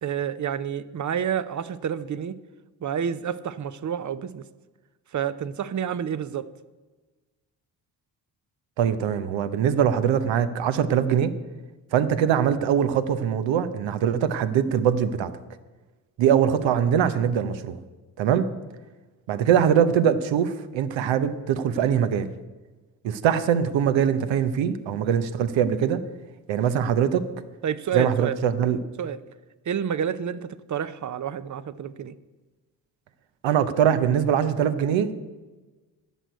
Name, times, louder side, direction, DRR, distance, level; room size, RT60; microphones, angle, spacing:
voice 1, 0.0-2.3 2.8-4.4 5.1-6.5 27.6-28.4 29.0-29.2 29.7-32.1, right 8 dB, 40° right, 15 dB, 0.7 m, -29 dB
voice 2, 8.8-11.3 11.9-15.3 16.2-17.8 18.2-18.5 19.3-22.3 23.0-26.0 26.5-27.3 27.9-28.8 33.4-35.3, right 8 dB, 75° right, 12 dB, 0.9 m, -22 dB
11.0 x 6.2 x 8.1 m, 1.3 s
supercardioid pair, 65°, 46 cm